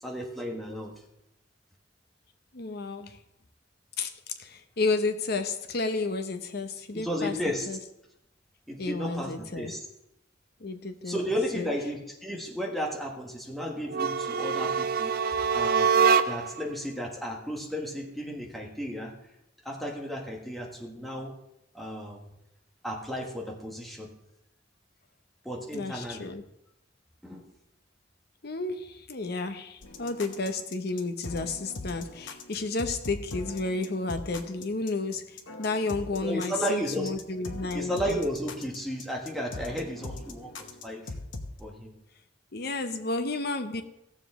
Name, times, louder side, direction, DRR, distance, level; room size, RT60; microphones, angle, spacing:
voice 1, 0.0-1.0 6.9-7.8 8.7-9.8 11.0-16.0 16.2-19.1 19.6-21.3 21.7-22.2 22.8-24.1 25.4-26.3 27.2-27.5 36.2-37.2 37.7-41.1 41.6-41.9, equal, ahead, 1.5 m, -34 dB
voice 2, 2.5-3.2 4.0-4.1 4.4-7.3 7.7-7.8 8.8-9.7 10.6-11.2 11.5-11.7 25.7-26.4 28.4-38.2 42.5-43.8, left 3 dB, 55° left, 0.8 m, -31 dB
sound 1, 13.9-16.6, right 6 dB, 50° right, 0.4 m, -24 dB
sound 2, 29.8-41.6, left 2 dB, 80° left, 1.0 m, -41 dB
16.5 x 7.2 x 3.7 m
head